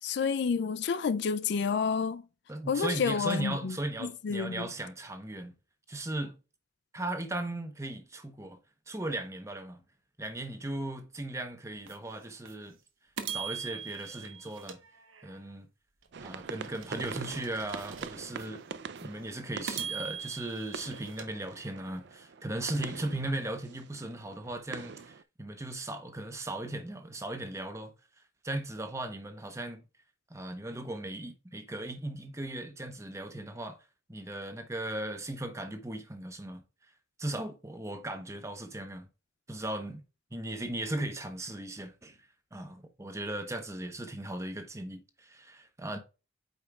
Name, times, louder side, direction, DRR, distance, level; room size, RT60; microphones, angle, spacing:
voice 1, 0.0-2.2 2.7-4.7, left 5 dB, 55° left, 0.3 m, -30 dB
voice 2, 2.5-5.5 5.9-6.4 6.9-8.6 8.9-9.8 10.2-12.8 13.3-14.8 15.2-15.7 16.2-18.6 19.0-27.9 28.4-29.8 30.3-33.8 34.1-36.6 37.2-39.1 39.5-40.0 40.3-42.2 42.5-46.0, right 1 dB, 15° right, 0.9 m, -37 dB
sound 1, 11.9-12.0 12.4-12.5 13.2-15.5 16.0-18.5 19.0-19.1 19.7-22.0, right 7 dB, 85° right, 1.1 m, -42 dB
sound 2, 16.1-25.2, right 5 dB, 55° right, 0.4 m, -44 dB
8.5 x 5.1 x 2.3 m
head